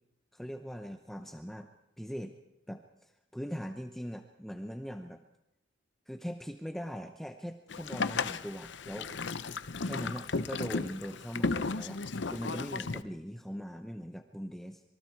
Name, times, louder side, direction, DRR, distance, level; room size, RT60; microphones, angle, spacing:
voice 1, 0.3-1.7 2.0-2.4 2.7-5.2 6.1-9.1 9.8-14.8, equal, ahead, 5 dB, 0.9 m, -41 dB
Boat Water vehicle, 7.7-13.0, left 4 dB, 70° left, 0.8 m, -35 dB
26.0 x 23.5 x 4.7 m, 0.85 s
head